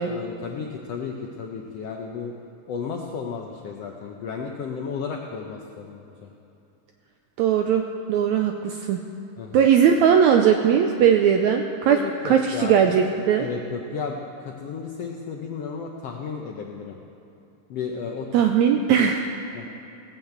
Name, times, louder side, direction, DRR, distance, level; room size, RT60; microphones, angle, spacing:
voice 1, 0.0-2.3 2.7-6.3 9.4-9.7 11.9-13.0 13.4-17.0 17.7-18.3 18.9-19.1 19.5-19.7, left 5 dB, 80° left, 1 dB, 1.4 m, -33 dB
voice 2, 7.4-7.8 8.1-9.0 9.5-12.0 12.2-13.5 18.3-19.3, right 8 dB, 90° right, 4 dB, 1.6 m, -19 dB
16.5 x 7.3 x 8.0 m, 2.9 s
omnidirectional pair, 3.9 m